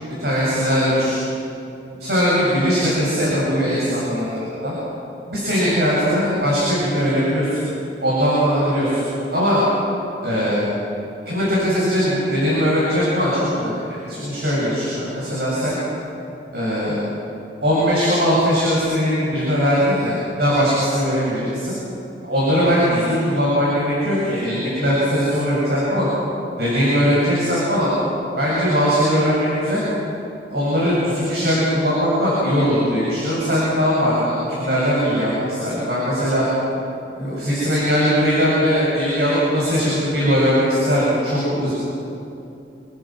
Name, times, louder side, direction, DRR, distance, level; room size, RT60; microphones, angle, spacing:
voice 1, 0.2-1.2 2.0-4.7 5.3-7.7 8.0-9.0 9.3-9.6 10.2-10.6 11.2-15.8 16.5-17.0 17.6-21.8 22.2-26.1 26.6-27.9 28.4-29.8 30.5-36.4 37.2-41.7, equal, 65° right, -7 dB, 7.9 m, -20 dB
28.5 x 25.0 x 6.2 m, 2.8 s
head